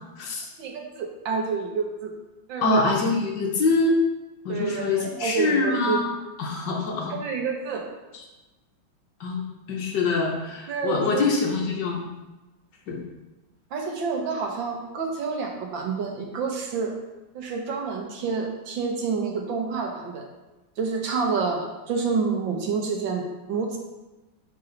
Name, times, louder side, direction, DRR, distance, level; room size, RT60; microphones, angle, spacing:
voice 1, 0.6-2.1 2.5-2.9 4.5-6.0 7.2-7.9 10.7-11.2 13.7-16.9 17.4-20.2 20.8-23.8, right 5 dB, 70° right, 1 dB, 1.7 m, -28 dB
voice 2, 2.6-4.0 4.4-6.1 6.4-7.1 9.2-9.4 9.7-12.1 12.9-13.0, left 3 dB, 65° left, 0 dB, 1.5 m, -24 dB
6.2 x 6.0 x 3.9 m, 1.1 s
omnidirectional pair, 2.2 m